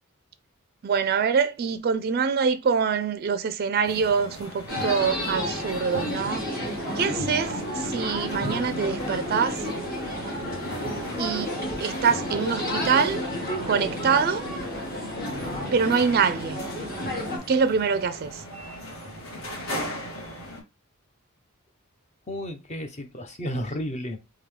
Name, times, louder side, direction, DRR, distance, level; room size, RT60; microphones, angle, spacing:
voice 1, 0.8-6.5 7.0-9.7 11.2-11.5 11.8-13.2 13.7-14.4 15.7-16.6 17.5-18.4, right 6 dB, 45° right, 0.4 m, -24 dB
sound 1, 3.8-20.6, equal, 65° left, 1.7 m, -39 dB
sound 2, 4.7-17.4, left 1 dB, 50° left, 1.7 m, -31 dB
voice 2, 22.3-24.2, equal, 30° left, 0.6 m, -32 dB
3.7 x 2.7 x 3.2 m
head